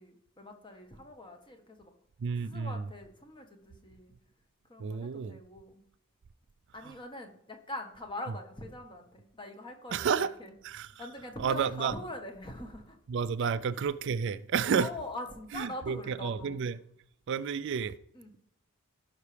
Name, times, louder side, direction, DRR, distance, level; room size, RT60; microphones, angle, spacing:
voice 1, 0.0-1.9 2.4-4.1 4.7-5.8 6.7-10.5 11.0-13.0 13.4-13.6 14.7-16.6 18.1-18.3, left 1 dB, 25° left, 1.3 m, -43 dB
voice 2, 2.2-2.8 4.8-5.4 6.8-7.0 9.9-10.3 10.6-11.0 11.4-11.9 13.1-14.9 15.5-16.8 17.3-18.0, right 6 dB, 60° right, 0.4 m, -31 dB
16.5 x 5.8 x 3.4 m
head